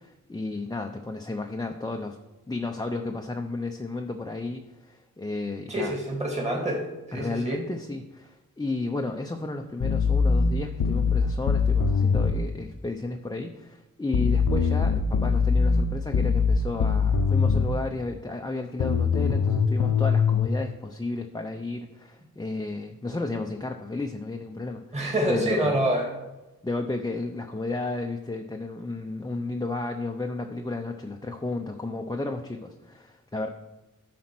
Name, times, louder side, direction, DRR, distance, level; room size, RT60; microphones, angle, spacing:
voice 1, 0.0-2.2 2.5-6.0 7.1-25.0 25.3-25.8 26.6-33.5, left 2 dB, 10° left, 3 dB, 0.6 m, -33 dB
voice 2, 5.7-6.9 7.1-7.6 24.9-26.1, right 1 dB, 20° right, -1 dB, 2.0 m, -26 dB
sound 1, 9.8-12.4 14.1-17.8 18.8-20.5, left 5 dB, 80° left, 0.8 m, -22 dB
10.0 x 4.2 x 6.0 m, 1.0 s
cardioid pair, 65°, 34 cm